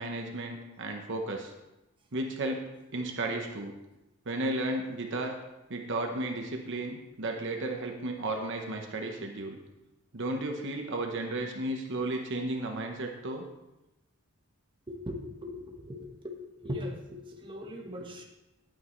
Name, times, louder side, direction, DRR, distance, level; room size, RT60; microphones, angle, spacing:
voice 1, 0.0-1.5 2.1-3.7 4.3-5.3 5.7-9.6 10.1-13.5, right 2 dB, 60° right, 3 dB, 1.0 m, -34 dB
voice 2, 14.9-15.6 15.8-16.3 16.6-18.2, left 1 dB, 25° right, 0 dB, 1.3 m, -39 dB
11.5 x 9.0 x 3.2 m, 0.96 s
head